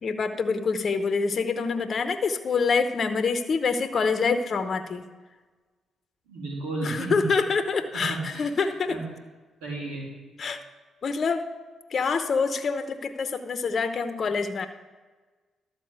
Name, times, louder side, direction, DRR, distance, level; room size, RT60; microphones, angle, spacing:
voice 1, 0.0-5.0 6.8-9.0 10.4-10.6 11.0-11.4 11.9-14.7, left 5 dB, 55° left, 9 dB, 0.8 m, -26 dB
voice 2, 6.3-7.3 7.9-8.5 8.9-9.0 9.6-10.1, right 3 dB, 90° right, -3 dB, 2.6 m, -33 dB
12.0 x 4.2 x 8.0 m, 1.3 s
supercardioid pair, 50°, 0 cm